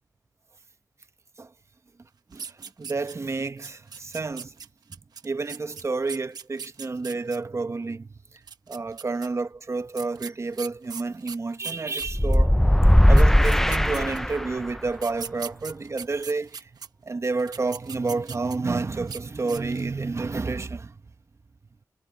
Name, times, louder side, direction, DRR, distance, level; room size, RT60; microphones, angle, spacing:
voice 1, 2.3-4.5 5.2-8.1 8.7-12.6 13.1-16.7 17.0-21.0, right 3 dB, 45° right, 1.2 m, -30 dB
sound 1, 2.3-3.3 3.6-7.4 8.4-9.3 9.9-12.4 12.9-13.0 13.2-14.4 14.9-16.9 17.4-18.7 19.0-19.2 19.5-19.9, right 6 dB, 85° right, 1.1 m, -40 dB
sound 2, 12.1-14.7, equal, 5° left, 0.6 m, -18 dB
cardioid pair, 50°, 7 cm